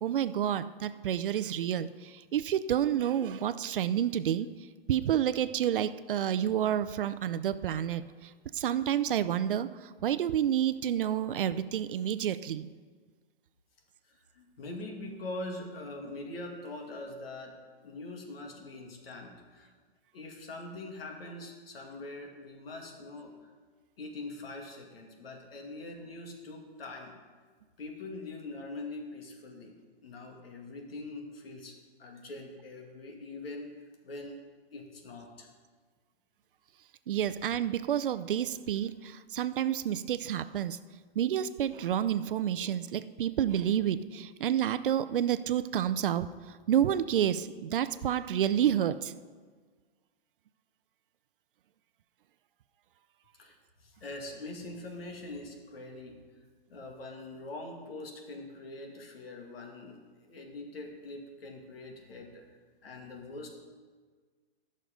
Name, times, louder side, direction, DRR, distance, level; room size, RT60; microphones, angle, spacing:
voice 1, 0.0-4.5 4.9-8.0 8.5-9.7 10.0-12.7 37.1-40.8 41.2-46.3 46.7-49.1, right 10 dB, 60° right, 13 dB, 0.5 m, -29 dB
voice 2, 14.3-19.7 20.1-23.5 24.0-27.2 27.8-33.7 34.0-34.4 34.7-35.5 53.4-56.3 56.7-62.5 62.8-63.6, left 2 dB, 70° left, 2 dB, 2.1 m, -43 dB
11.0 x 6.5 x 5.1 m, 1.5 s
hypercardioid pair, 170°, 30 cm